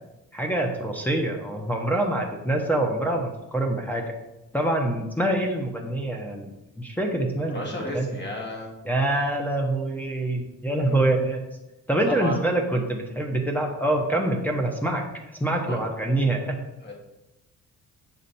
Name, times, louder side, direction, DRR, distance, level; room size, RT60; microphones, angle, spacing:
voice 1, 0.3-4.1 4.5-8.1 8.8-11.4 11.9-15.0 15.4-16.6, right 1 dB, 5° left, 2 dB, 1.1 m, -25 dB
voice 2, 7.5-8.7 10.8-11.1 12.0-12.4 15.6-15.8 16.8-16.9, left 1 dB, 35° left, -1 dB, 2.2 m, -33 dB
7.5 x 5.1 x 4.2 m, 0.96 s
cardioid pair, 90°, 30 cm